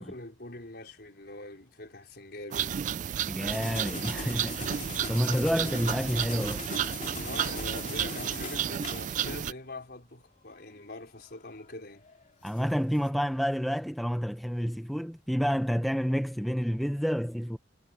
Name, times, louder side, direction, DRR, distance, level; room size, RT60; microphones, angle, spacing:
voice 1, 0.0-2.8 7.2-12.0, left 2 dB, 60° left, 5.0 m, -43 dB
sound 1, 2.5-9.5, right 9 dB, 45° right, 0.3 m, -32 dB
voice 2, 3.3-4.6 5.1-6.6 12.4-17.6, equal, ahead, 0.7 m, -29 dB
sound 2, 3.5-9.6 10.4-10.9 11.9-13.1, left 4 dB, 45° left, 2.8 m, -41 dB
head